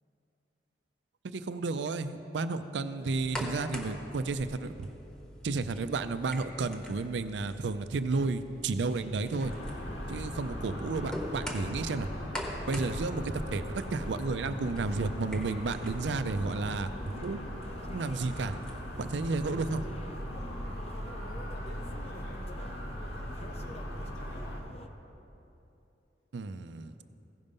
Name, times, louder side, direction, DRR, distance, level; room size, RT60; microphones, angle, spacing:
voice 1, 1.2-4.9 5.4-9.5 10.1-12.1 12.7-16.9 17.2-17.4 17.9-18.5 19.0-19.8 26.3-26.9, right 3 dB, 80° right, 11 dB, 0.4 m, -32 dB
voice 2, 2.9-4.1 21.5-22.5 23.0-24.4, equal, 85° left, -4 dB, 2.7 m, -55 dB
sound 1, 3.0-19.5, equal, 5° left, 1.0 m, -45 dB
sound 2, 8.8-24.9, left 2 dB, 35° left, 0.4 m, -50 dB
sound 3, 9.4-24.6, equal, 70° left, 1.6 m, -39 dB
15.5 x 5.4 x 5.3 m, 2.9 s
head